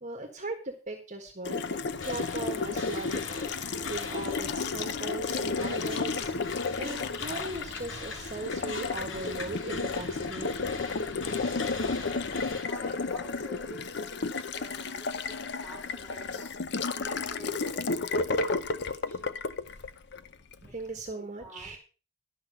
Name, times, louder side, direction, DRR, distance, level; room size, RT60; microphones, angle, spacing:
voice 1, 0.0-3.5 3.9-10.5 20.6-21.8, right 2 dB, 40° right, 4 dB, 1.6 m, -39 dB
Water tap faucet, 1.4-20.6, left 4 dB, 60° left, 0.7 m, -32 dB
sound 1, 2.0-12.6, left 3 dB, 80° left, 2.6 m, -42 dB
voice 2, 11.2-16.5 16.9-19.4 21.1-21.8, right 1 dB, 10° left, -4 dB, 4.3 m, -49 dB
12.0 x 6.0 x 6.9 m, 0.34 s
head